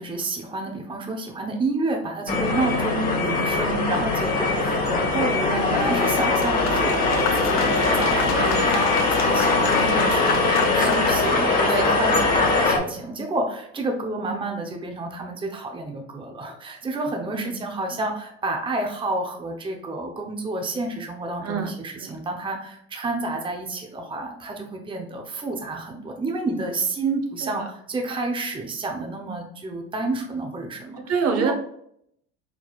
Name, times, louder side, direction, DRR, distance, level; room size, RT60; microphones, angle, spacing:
voice 1, 0.0-31.5, right 2 dB, 15° right, 2 dB, 0.8 m, -30 dB
sound 1, 2.3-12.8, left 3 dB, 25° left, 1.5 m, -21 dB
sound 2, 5.4-11.3, left 6 dB, 60° left, 0.9 m, -29 dB
voice 2, 8.4-8.7 11.7-12.0 17.3-17.6 21.4-22.1 27.4-27.7 31.1-31.5, right 5 dB, 50° right, 4 dB, 1.0 m, -27 dB
4.6 x 4.1 x 2.4 m, 0.70 s
supercardioid pair, 100°, 31 cm